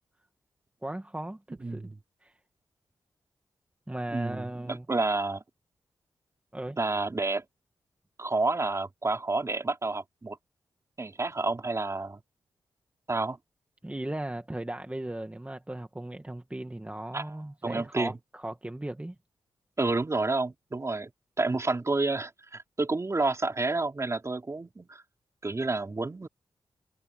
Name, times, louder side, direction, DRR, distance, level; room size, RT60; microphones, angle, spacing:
voice 1, 0.8-1.9 2.2-2.4 3.9-4.9 6.5-6.8 13.8-19.2, right 1 dB, 15° right, 2.0 m, -37 dB
voice 2, 1.5-2.0 4.1-5.4 6.8-7.4 8.2-10.4 11.0-12.2 13.1-13.4 17.1-17.3 17.6-18.2 19.8-21.1 21.4-25.0 25.4-26.3, right 3 dB, 35° right, 4.9 m, -29 dB
supercardioid pair, 45°, 8 cm